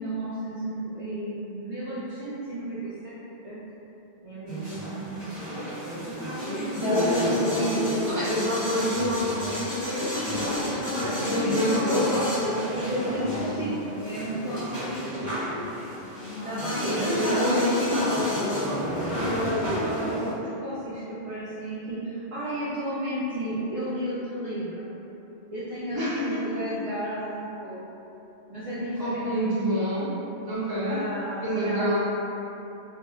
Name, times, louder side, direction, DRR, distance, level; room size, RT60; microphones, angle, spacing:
voice 1, 0.0-3.1 3.4-3.6 4.2-5.3 9.2-9.4 11.5-12.2 12.7-15.3 16.4-18.2 19.8-24.9 25.5-27.8 28.5-29.3 30.8-31.9, right 1 dB, 50° right, -11 dB, 0.4 m, -33 dB
sound 1, 4.5-20.3, equal, 20° left, 1.2 m, -29 dB
voice 2, 6.8-10.5 11.2-12.2 16.7-18.2 25.9-26.5 29.0-30.1 30.4-31.0 31.4-32.0, equal, 20° right, -12 dB, 0.8 m, -27 dB
2.6 x 2.0 x 3.5 m, 2.9 s
omnidirectional pair, 1.1 m